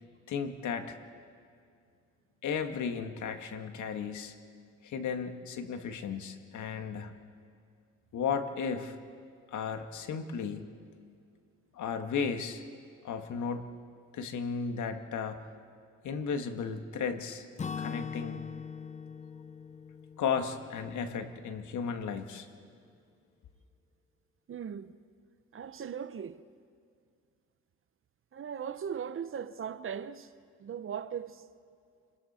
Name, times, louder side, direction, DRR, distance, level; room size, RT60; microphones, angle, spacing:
voice 1, 0.3-1.0 2.4-4.4 4.8-7.1 8.1-9.0 9.5-10.7 11.7-12.6 13.0-13.7 14.1-15.4 16.0-17.4 17.8-18.4 20.2-22.5, left 6 dB, 75° left, 1.7 m, -34 dB
Acoustic guitar / Strum, 17.6-21.5, left 6 dB, 25° left, 0.5 m, -41 dB
voice 2, 24.5-24.9 25.5-26.4 28.3-30.3 30.6-31.4, right 8 dB, 45° right, 0.8 m, -38 dB
30.0 x 20.0 x 4.3 m
cardioid pair, 90°, 30 cm